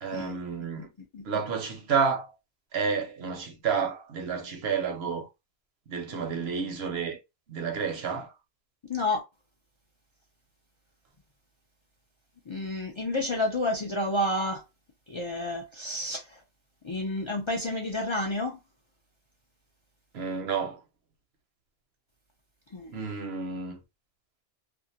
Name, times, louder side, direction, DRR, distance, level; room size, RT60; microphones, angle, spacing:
voice 1, 0.0-0.9 1.2-2.3 2.7-5.3 5.9-7.2 7.5-8.3 20.1-20.8 22.9-23.8, right 6 dB, 80° right, 1.0 m, -30 dB
voice 2, 8.9-9.2 12.5-14.6 15.1-16.4 16.8-18.6 22.7-22.9, left 1 dB, 45° left, 0.4 m, -30 dB
2.5 x 2.4 x 2.6 m
omnidirectional pair, 1.0 m